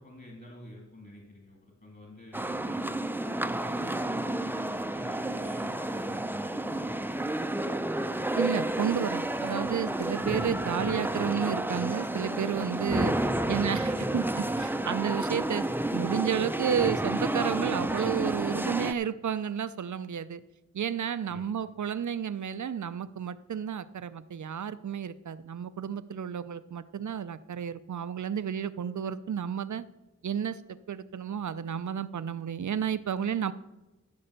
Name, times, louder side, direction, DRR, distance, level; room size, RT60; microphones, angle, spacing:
voice 1, 0.0-7.5 13.1-13.8 21.3-21.5, left 1 dB, 35° left, -2 dB, 3.0 m, -48 dB
sound 1, 2.3-18.9, right 1 dB, 5° right, 0.5 m, -30 dB
voice 2, 8.4-13.2 13.5-15.6 15.9-20.4 20.7-29.8 30.2-33.5, right 8 dB, 80° right, 15 dB, 0.6 m, -31 dB
14.5 x 5.4 x 6.7 m, 1.0 s
wide cardioid pair, 65°, 29 cm